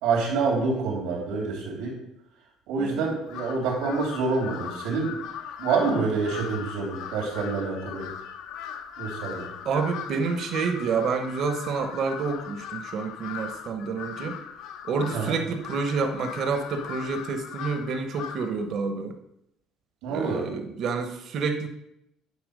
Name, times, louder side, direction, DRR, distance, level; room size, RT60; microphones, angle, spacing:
voice 1, 0.0-1.9 2.7-5.1 5.6-8.1 9.0-9.5 15.1-15.4 20.0-20.5, right 4 dB, 90° right, -2 dB, 3.3 m, -27 dB
Crow, 3.3-18.6, left 8 dB, 65° left, 0.9 m, -39 dB
voice 2, 9.6-14.4 14.8-19.1 20.1-21.7, right 5 dB, 45° right, 7 dB, 1.0 m, -29 dB
9.7 x 4.5 x 6.6 m, 0.79 s
cardioid pair, 160°, 0 cm